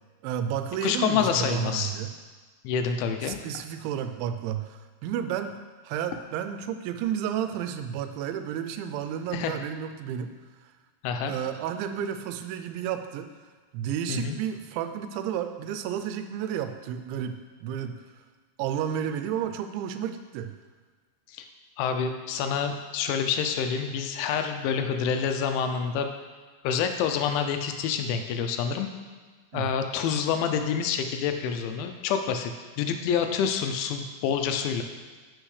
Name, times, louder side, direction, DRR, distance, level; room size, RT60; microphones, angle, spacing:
voice 1, 0.2-2.1 3.2-5.5 5.8-10.3 11.2-13.3 13.7-17.4 17.6-18.0 18.6-20.5 29.5-29.6, right 9 dB, 90° right, 8 dB, 2.9 m, -31 dB
voice 2, 0.8-1.9 2.6-3.4 9.3-9.6 11.0-11.3 14.1-14.4 21.3-21.5 21.8-26.1 26.6-28.9 29.5-32.5 32.8-34.8, left 7 dB, 90° left, 6 dB, 3.0 m, -27 dB
9.9 x 6.2 x 3.3 m, 1.4 s
omnidirectional pair, 5.2 m